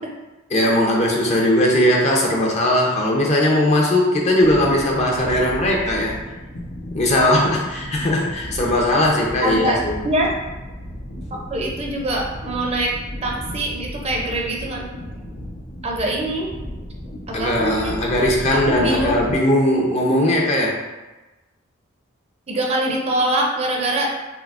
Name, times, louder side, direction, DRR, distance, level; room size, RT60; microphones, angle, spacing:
voice 1, 0.5-6.2 6.9-10.0 17.3-20.8, left 1 dB, 35° left, -1 dB, 0.6 m, -19 dB
sound 1, 4.4-19.4, equal, 85° left, 1.1 m, -34 dB
voice 2, 9.4-9.8 10.0-10.3 11.3-12.9 13.2-14.9 15.8-16.5 17.3-18.0 18.5-19.1 22.5-24.1, right 1 dB, 30° right, -1 dB, 0.5 m, -23 dB
5.7 x 2.0 x 2.4 m, 1.1 s
head